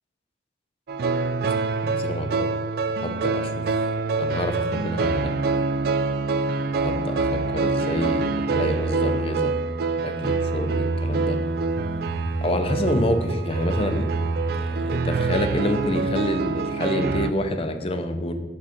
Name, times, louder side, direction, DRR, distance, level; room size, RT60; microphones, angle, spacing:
sound 1, 0.9-17.3, right 3 dB, 55° right, 0.3 m, -25 dB
voice 1, 1.8-2.5 2.9-3.6 4.2-5.3 6.8-9.5 10.0-11.4 12.4-14.1 14.5-18.3, left 1 dB, 30° left, 7 dB, 0.5 m, -27 dB
sound 2, 10.3-15.9, equal, 15° right, 0.8 m, -39 dB
6.3 x 3.7 x 5.7 m, 1.3 s
head